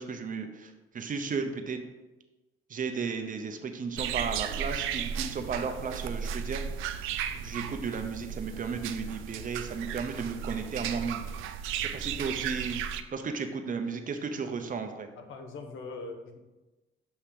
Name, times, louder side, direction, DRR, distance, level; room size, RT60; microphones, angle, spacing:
voice 1, 0.0-1.8 2.7-6.6 7.3-11.2 11.8-12.8 13.1-15.1, right 5 dB, 45° right, 6 dB, 0.7 m, -34 dB
sound 1, 4.0-13.0, right 8 dB, 90° right, 0.4 m, -35 dB
voice 2, 15.2-16.4, left 3 dB, 80° left, 5 dB, 0.9 m, -41 dB
7.0 x 2.9 x 5.0 m, 1.1 s
cardioid pair, 90°, 20 cm